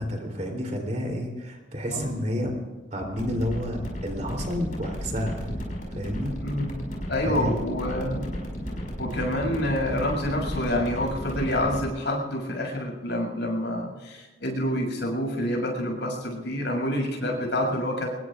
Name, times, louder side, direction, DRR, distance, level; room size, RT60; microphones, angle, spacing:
voice 1, 0.0-2.5 2.9-5.4 5.9-6.3 7.3-7.5, equal, 40° right, 1 dB, 3.4 m, -30 dB
sound 1, 3.1-11.9, equal, 45° left, 5.7 m, -34 dB
voice 2, 6.4-6.7 7.1-8.3 9.0-18.1, left 1 dB, 65° left, 1 dB, 6.8 m, -27 dB
25.5 x 22.0 x 2.5 m, 1.3 s
head